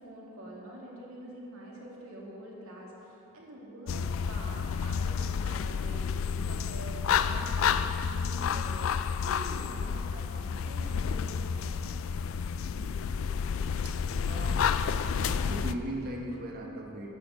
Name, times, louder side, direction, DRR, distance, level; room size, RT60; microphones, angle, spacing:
voice 1, 0.0-6.1 6.5-8.9 9.2-11.9, right 1 dB, 85° right, -3 dB, 2.2 m, -46 dB
sound 1, 3.9-15.7, left 6 dB, 65° left, 0.3 m, -30 dB
voice 2, 12.7-14.0 14.2-14.6 15.1-17.1, right 1 dB, 45° right, 1 dB, 1.2 m, -39 dB
10.0 x 6.7 x 6.7 m, 3.0 s
head